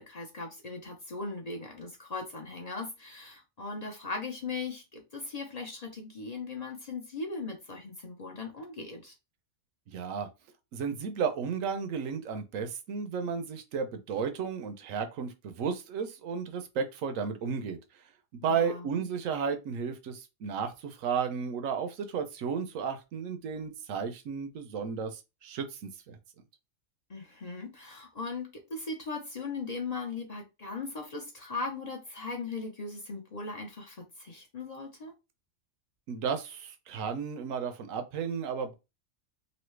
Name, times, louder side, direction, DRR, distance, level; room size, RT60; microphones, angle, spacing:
voice 1, 0.0-9.1 18.4-19.0 27.1-35.1, left 3 dB, 40° left, 0.6 m, -38 dB
voice 2, 9.9-10.3 10.7-17.8 18.3-26.2 36.1-38.7, right 6 dB, 75° right, 1.0 m, -33 dB
3.1 x 2.6 x 3.2 m
omnidirectional pair, 1.4 m